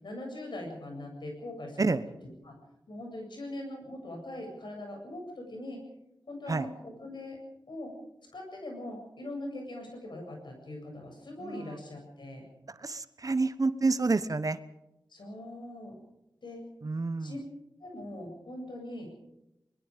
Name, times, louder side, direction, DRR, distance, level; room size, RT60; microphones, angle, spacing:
voice 1, 0.0-2.0 2.4-2.6 2.9-5.8 6.3-7.4 7.7-7.9 8.3-12.4 15.1-16.0 16.4-16.6 17.2-17.4 17.8-19.1, left 1 dB, 80° left, 2 dB, 7.9 m, -41 dB
voice 2, 12.8-14.6 16.8-17.3, right 3 dB, 50° right, 13 dB, 1.1 m, -28 dB
22.5 x 22.0 x 5.2 m, 0.89 s
wide cardioid pair, 65°, 8 cm